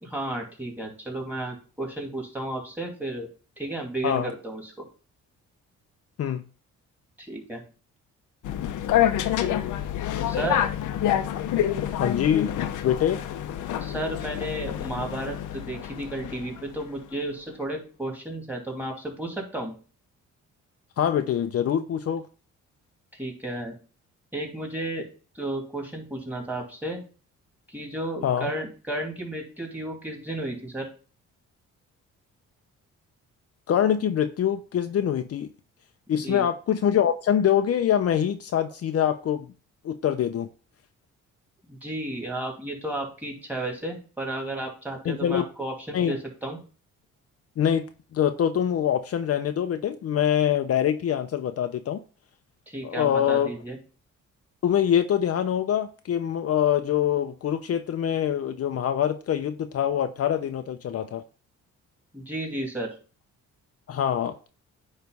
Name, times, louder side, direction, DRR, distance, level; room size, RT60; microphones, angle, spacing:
voice 1, 0.0-3.3 3.6-4.7 7.2-7.6 10.2-10.6 13.8-19.7 23.1-23.7 24.3-25.0 25.3-27.0 27.7-30.9 36.1-36.4 41.7-46.6 52.7-53.8 62.1-62.9, right 1 dB, 5° right, 2.7 m, -33 dB
sound 1, 8.4-16.8, left 11 dB, 80° left, 0.8 m, -27 dB
voice 2, 11.9-13.2 21.0-22.2 28.2-28.5 33.7-35.5 36.1-39.5 39.8-40.5 45.0-45.5 45.9-46.1 47.6-47.8 48.1-52.0 52.8-53.5 54.6-61.2 63.9-64.5, left 9 dB, 50° left, 0.6 m, -24 dB
9.3 x 3.3 x 5.3 m
cardioid pair, 90°, 30 cm